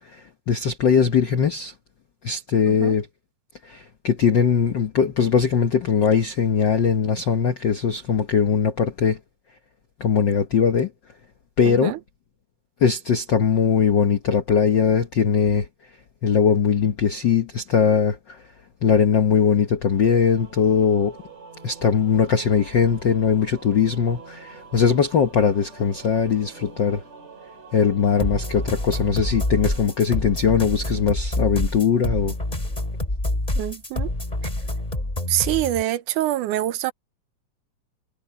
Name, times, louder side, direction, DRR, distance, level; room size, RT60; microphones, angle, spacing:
voice 1, 0.1-1.7 2.2-3.1 3.6-9.2 10.0-10.9 11.6-11.9 12.8-15.7 16.2-18.4 18.8-21.2 21.6-27.0 27.7-32.3, left 6 dB, 70° left, 1.0 m, -20 dB
voice 2, 11.7-12.0 33.6-34.1 35.3-36.9, right 14 dB, 85° right, 2.3 m, -25 dB
Singing / Musical instrument, 19.8-31.1, right 5 dB, 55° right, 5.8 m, -46 dB
sound 1, 28.2-35.8, left 1 dB, 15° left, 3.2 m, -27 dB
omnidirectional pair, 3.6 m